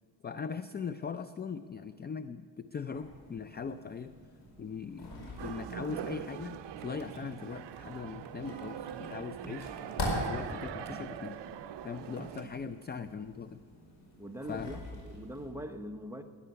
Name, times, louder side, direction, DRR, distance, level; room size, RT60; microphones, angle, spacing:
voice 1, 0.2-4.1 4.6-9.7 10.0-11.4 11.8-13.6 14.5-14.8, left 6 dB, 25° left, 11 dB, 0.3 m, -40 dB
sound 1, 2.9-15.5, left 1 dB, 65° left, 5.0 m, -43 dB
sound 2, 4.4-12.5, right 3 dB, 35° right, 2.8 m, -54 dB
sound 3, 5.4-12.4, right 10 dB, 65° right, 0.7 m, -42 dB
voice 2, 14.2-16.2, equal, 5° right, 5 dB, 0.8 m, -42 dB
18.5 x 10.0 x 6.9 m, 2.2 s
cardioid pair, 125°, 46 cm